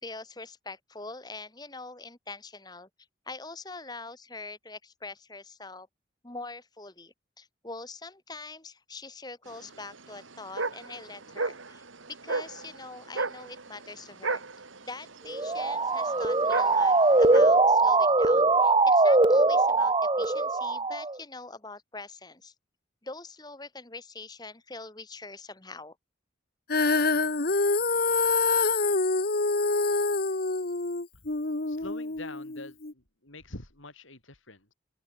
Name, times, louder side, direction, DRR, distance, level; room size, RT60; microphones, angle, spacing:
voice 1, 0.0-2.9 3.2-5.9 6.2-14.4 14.8-22.5 23.0-25.9, left 3 dB, 20° left, 1.6 m, -43 dB
sound 1, 9.5-17.4, right 3 dB, 80° right, 2.5 m, -35 dB
Motor vehicle (road) / Siren, 15.3-21.2, right 3 dB, 25° right, 0.8 m, -22 dB
Female singing, 26.7-32.9, left 3 dB, 50° left, 1.1 m, -26 dB
voice 2, 31.7-34.7, left 2 dB, 80° left, 7.4 m, -45 dB
open air
head